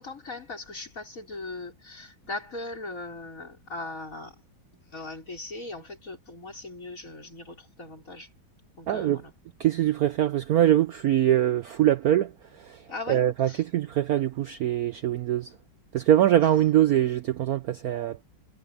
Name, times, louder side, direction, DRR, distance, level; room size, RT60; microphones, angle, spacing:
voice 1, 0.0-4.4 4.9-8.3 8.8-9.3 12.9-13.7, left 2 dB, 40° left, 5.6 m, -39 dB
voice 2, 8.9-9.2 9.6-12.3 12.6-12.8 13.1-15.5 15.9-18.2, right 12 dB, 70° right, 0.8 m, -23 dB
omnidirectional pair, 2.2 m